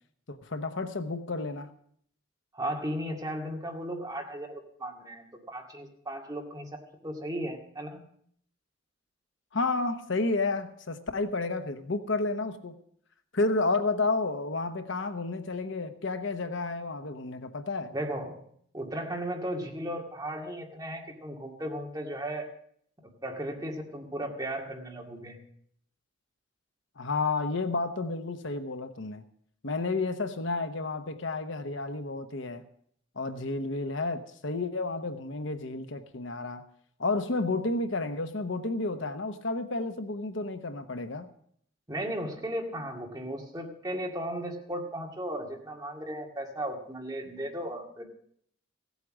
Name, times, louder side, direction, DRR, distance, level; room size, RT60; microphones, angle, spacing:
voice 1, 0.3-1.7 9.5-12.8 13.3-17.9 27.0-29.2 29.6-32.6 33.2-36.6 37.0-41.3, left 3 dB, 65° left, 8 dB, 1.0 m, -31 dB
voice 2, 2.5-8.0 17.9-18.4 18.7-22.5 23.2-25.4 41.9-48.1, right 1 dB, 20° right, 0 dB, 2.1 m, -36 dB
16.0 x 8.3 x 6.2 m, 0.65 s
head